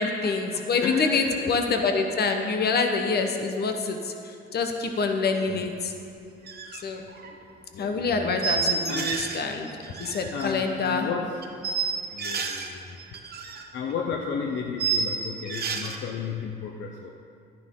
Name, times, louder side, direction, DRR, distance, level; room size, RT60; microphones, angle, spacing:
voice 1, 0.0-5.9 6.7-7.0 7.8-9.7 10.0-11.1, left 4 dB, 55° left, 5 dB, 1.2 m, -26 dB
voice 2, 0.5-1.7 5.5-5.8 7.7-9.1 10.3-11.4 12.1-13.0 13.7-17.1, left 6 dB, 70° left, 1 dB, 0.8 m, -33 dB
sound 1, 6.5-6.8 7.1-7.3 8.4-9.4 9.7-10.5 11.4-12.7 13.0-13.6 13.9-14.0 14.8-16.0, right 6 dB, 50° right, 1.1 m, -29 dB
11.5 x 10.0 x 3.8 m, 2.4 s
cardioid pair, 90°, 20 cm